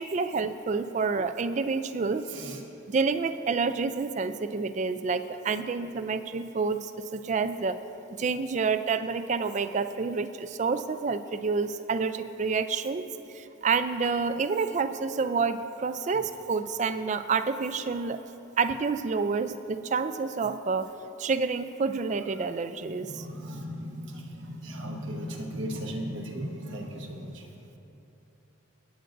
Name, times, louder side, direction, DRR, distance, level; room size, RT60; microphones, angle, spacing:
voice 1, 0.0-2.3 2.9-7.8 8.2-13.1 13.3-18.2 18.6-20.9 21.2-23.2, right 4 dB, 35° right, 11 dB, 0.3 m, -28 dB
voice 2, 2.2-2.6 5.5-5.6 6.0-6.1 16.1-16.2 22.4-22.5 22.9-27.6, equal, 65° right, 2 dB, 1.1 m, -37 dB
22.0 x 8.9 x 2.6 m, 3.0 s
head